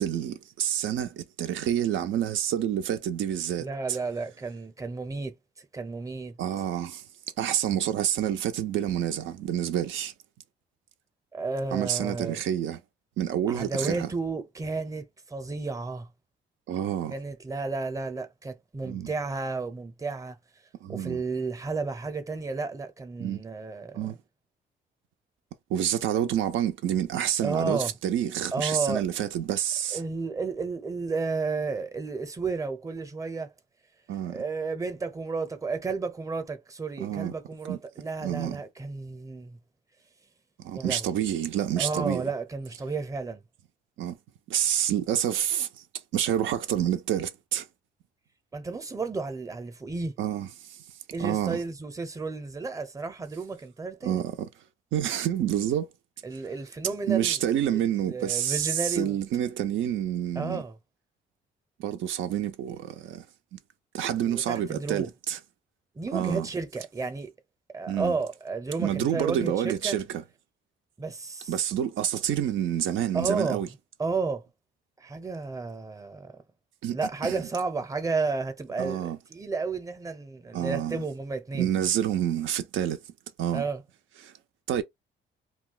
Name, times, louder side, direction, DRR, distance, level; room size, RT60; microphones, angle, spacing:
voice 1, 0.0-4.0 6.4-7.0 7.4-10.1 11.7-12.8 13.2-14.1 16.7-17.1 18.8-19.1 20.8-21.2 23.2-23.4 23.9-24.2 25.7-30.0 34.1-34.4 37.0-37.3 37.7-37.8 38.2-38.6 40.6-42.3 44.0-44.2 44.5-45.8 46.1-47.7 50.2-50.8 51.2-51.6 54.0-54.5 54.9-55.9 57.1-60.6 61.8-63.3 63.5-63.6 63.9-65.4 66.1-66.5 67.9-68.2 68.8-70.2 71.5-73.7 76.8-77.5 78.8-79.2 80.5-81.0 81.5-83.0 83.4-83.6 84.2-84.3 84.7-84.8, right 10 dB, 75° right, 0.5 m, -28 dB
voice 2, 3.6-6.3 11.3-12.4 13.5-16.1 17.1-20.4 20.9-24.1 27.4-27.9 28.5-29.0 29.9-33.5 34.3-39.6 40.7-41.1 41.8-43.4 48.5-50.1 51.1-54.2 56.2-57.4 57.7-59.2 60.4-60.8 64.3-65.1 66.0-67.3 67.7-70.0 71.0-71.5 73.1-73.6 74.0-74.4 75.0-76.4 76.9-81.7 83.5-83.8, right 4 dB, 15° right, 0.7 m, -32 dB
2.3 x 2.3 x 3.8 m
cardioid pair, 90°, 20 cm